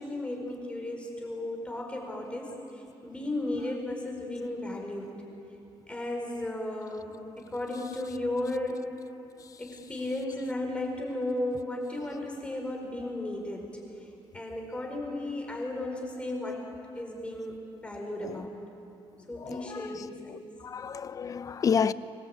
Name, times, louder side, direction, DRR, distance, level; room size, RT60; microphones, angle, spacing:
voice 1, 0.0-2.5 3.0-5.2 5.9-8.9 9.6-13.7 14.3-16.6 16.9-18.5 19.3-20.3, left 1 dB, 10° left, 4.8 m, -34 dB
voice 2, 19.4-19.9 20.3-20.4 20.6-21.9, left 6 dB, 35° left, 0.6 m, -29 dB
25.0 x 20.0 x 9.0 m
cardioid pair, 145°, 10 cm